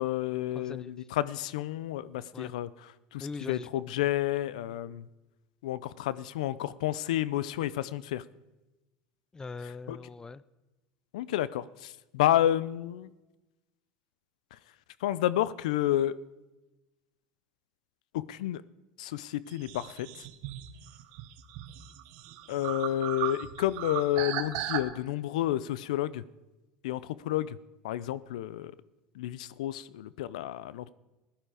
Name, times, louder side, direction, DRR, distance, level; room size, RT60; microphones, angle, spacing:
voice 1, 0.0-2.7 3.1-5.1 5.6-8.2 9.9-10.0 11.1-13.1 15.0-16.2 18.1-18.6 19.0-20.1 22.5-26.2 26.8-27.6 27.8-28.7 29.1-30.9, left 13 dB, 85° left, 18 dB, 0.5 m, -30 dB
voice 2, 0.5-1.1 2.3-2.5 3.2-4.1 9.3-10.4, left 4 dB, 15° left, 19 dB, 0.5 m, -41 dB
sound 1, 19.5-24.8, right 13 dB, 65° right, 1.2 m, -37 dB
15.5 x 11.5 x 5.0 m, 1.0 s
supercardioid pair, 105°, 4 cm